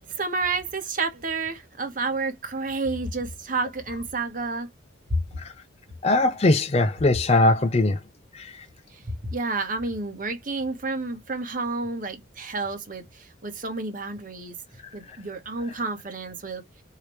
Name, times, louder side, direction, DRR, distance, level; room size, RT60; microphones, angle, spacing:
voice 1, 0.0-4.7 5.1-5.2 8.9-14.6 14.9-16.6, right 3 dB, 40° right, 1.2 m, -30 dB
voice 2, 6.0-8.0 8.3-8.7 15.1-15.2, left 2 dB, 30° left, 0.5 m, -21 dB
4.8 x 2.9 x 3.2 m
head